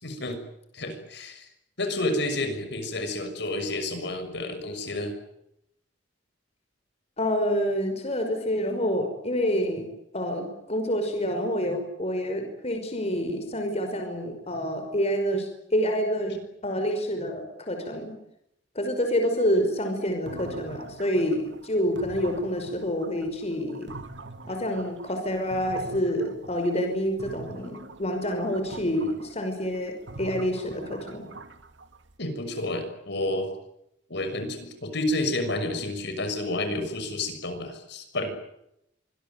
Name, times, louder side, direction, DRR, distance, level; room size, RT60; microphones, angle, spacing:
voice 1, 0.0-0.4 0.7-1.5 1.8-5.1 32.2-33.5 34.1-38.3, left 1 dB, 65° left, 7 dB, 6.5 m, -30 dB
voice 2, 7.2-9.9 10.1-18.1 18.8-23.9 24.5-31.3, equal, 35° left, 5 dB, 5.6 m, -28 dB
sound 1, 20.3-26.9 27.2-32.1, right 2 dB, 75° right, 2.5 m, -43 dB
26.0 x 21.0 x 9.3 m, 0.79 s
head